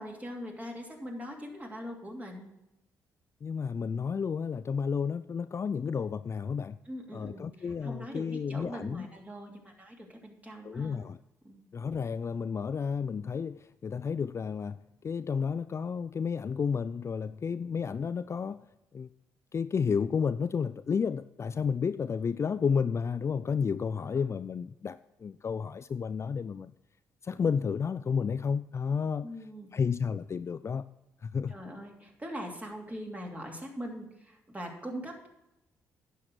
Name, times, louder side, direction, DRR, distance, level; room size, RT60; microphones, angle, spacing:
voice 1, 0.0-2.5 6.8-11.0 11.4-11.7 24.1-24.3 29.2-29.7 31.5-35.3, equal, 20° right, 2.8 m, -42 dB
voice 2, 3.4-6.8 7.1-9.1 10.6-11.2 11.7-18.6 18.9-19.1 19.5-26.7 27.2-29.3 29.7-30.9 31.2-31.6, left 6 dB, 40° left, 0.3 m, -31 dB
9.6 x 6.9 x 6.0 m
hypercardioid pair, 50°, 7 cm